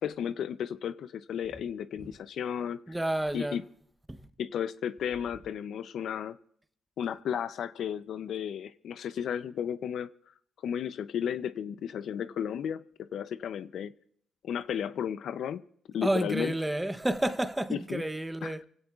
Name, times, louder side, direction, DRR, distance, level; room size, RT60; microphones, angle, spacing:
voice 1, 0.0-2.8 3.3-3.6 4.4-6.4 7.0-10.1 10.6-12.8 13.1-13.9 14.4-15.6 15.9-16.5 17.7-18.0 18.4-18.7, left 8 dB, 70° left, 0.5 m, -33 dB
voice 2, 2.9-3.6 4.1-4.2 16.0-18.6, right 1 dB, 10° right, 0.8 m, -30 dB
29.0 x 16.5 x 2.4 m
cardioid pair, 90°, 0 cm